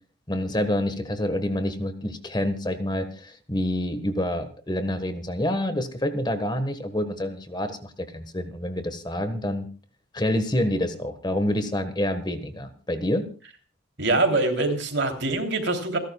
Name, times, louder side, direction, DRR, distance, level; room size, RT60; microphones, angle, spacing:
voice 1, 0.3-9.7 10.1-13.2, left 1 dB, 20° left, 9 dB, 1.4 m, -27 dB
voice 2, 14.0-16.0, right 2 dB, 60° right, 5 dB, 3.1 m, -24 dB
28.5 x 12.0 x 2.3 m, 0.36 s
head